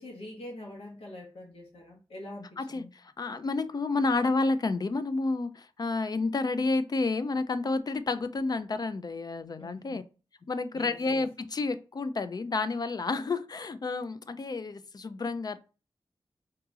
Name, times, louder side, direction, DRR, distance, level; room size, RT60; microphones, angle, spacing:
voice 1, 0.0-2.9 9.6-10.0 10.7-11.2, left 1 dB, 90° left, 1.1 m, -44 dB
voice 2, 3.2-10.0 10.5-15.6, left 3 dB, 45° left, 0.4 m, -30 dB
3.8 x 2.8 x 2.4 m
cardioid pair, 60°, 9 cm